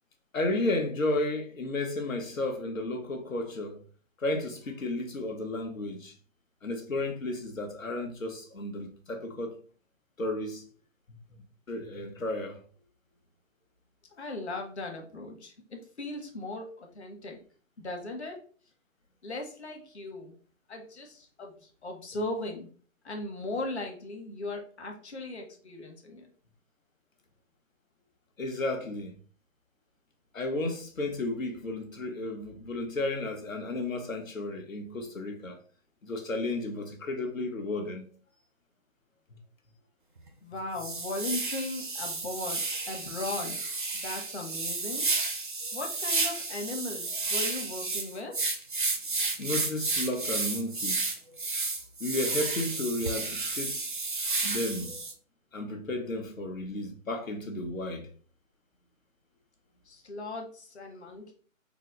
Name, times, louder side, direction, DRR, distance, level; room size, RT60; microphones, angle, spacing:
voice 1, 0.3-3.8 4.2-6.1 6.6-9.5 10.2-10.6 11.1-11.2 11.7-12.6 28.4-29.1 30.3-35.6 36.0-38.0 39.3-39.4 49.4-51.1 52.0-53.9 54.4-54.9 55.5-58.1, left 2 dB, 80° left, 1.2 m, -33 dB
voice 2, 14.1-17.4 17.8-18.4 19.2-20.4 20.7-22.7 23.0-26.3 40.4-43.7 43.9-45.1 45.7-48.3 59.8-61.3, left 2 dB, 55° left, 1.2 m, -38 dB
sound 1, 40.2-40.3 40.8-55.1, right 3 dB, 40° right, 0.4 m, -32 dB
4.0 x 2.0 x 3.8 m
figure-of-eight pair, 160°, 40 cm